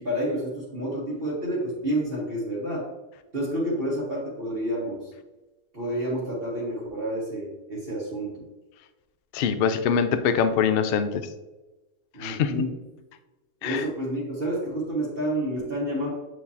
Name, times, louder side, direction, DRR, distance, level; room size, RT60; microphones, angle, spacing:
voice 1, 0.0-2.9 3.3-5.0 5.7-8.4 12.1-12.7 13.6-16.1, right 1 dB, 40° right, -5 dB, 1.5 m, -29 dB
voice 2, 9.3-11.3 12.2-12.5 13.6-13.8, left 7 dB, 85° left, 9 dB, 0.5 m, -23 dB
7.8 x 4.8 x 2.8 m, 1.1 s
omnidirectional pair, 1.7 m